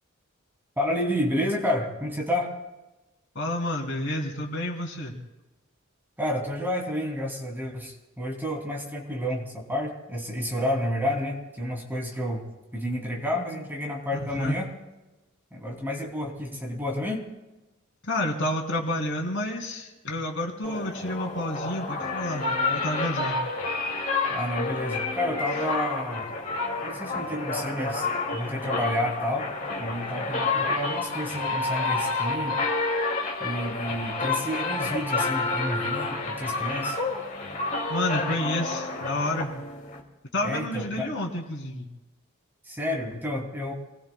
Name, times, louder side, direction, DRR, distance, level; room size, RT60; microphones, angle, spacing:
voice 1, 0.8-2.5 6.2-12.5 12.7-14.7 15.5-17.2 24.3-26.3 26.8-28.1 28.3-29.5 29.8-32.6 33.4-37.0 40.4-41.1 42.6-43.7, left 1 dB, 10° right, -1 dB, 3.1 m, -30 dB
voice 2, 3.3-5.1 14.3-14.6 18.0-23.4 37.9-39.5 40.3-41.9, left 1 dB, 60° left, 0 dB, 3.3 m, -30 dB
sound 1, 20.6-40.0, left 3 dB, 40° left, 2.6 m, -29 dB
28.0 x 20.5 x 2.4 m, 1.1 s
head